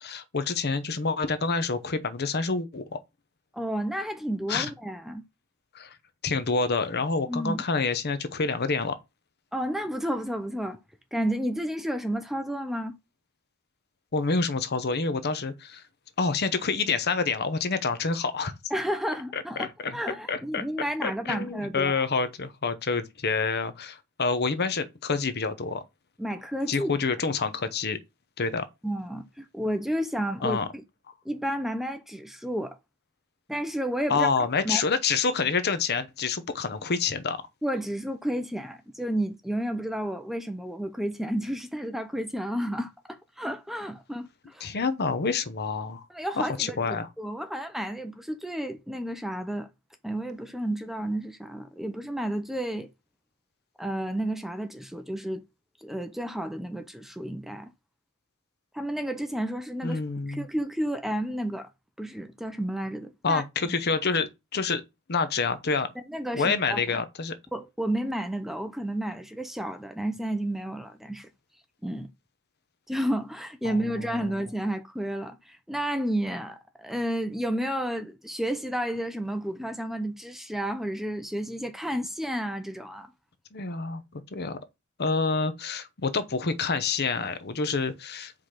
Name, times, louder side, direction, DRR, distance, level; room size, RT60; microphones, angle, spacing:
voice 1, 0.0-3.0 4.5-4.7 5.7-6.0 6.2-9.0 14.1-15.8 16.2-18.5 19.3-20.0 20.3-20.6 21.0-25.8 26.7-28.0 28.4-28.7 30.4-30.7 34.1-37.4 44.6-46.1 46.4-47.1 59.8-60.5 63.2-64.8 65.1-65.9 66.3-67.3 73.6-73.7 83.5-84.0 84.3-84.6 85.0-88.3, left 4 dB, 45° left, 0.8 m, -27 dB
voice 2, 3.5-5.2 7.3-7.6 9.5-10.8 11.1-13.0 18.7-22.0 26.2-26.9 28.8-30.6 31.3-32.8 33.5-34.3 34.6-34.8 37.6-44.7 46.1-49.7 50.0-52.9 53.8-55.4 55.8-57.7 58.7-60.0 60.3-61.7 62.0-63.4 66.1-67.0 67.5-71.3 71.8-72.1 72.9-83.1, right 1 dB, ahead, 0.5 m, -31 dB
5.0 x 3.9 x 5.8 m
head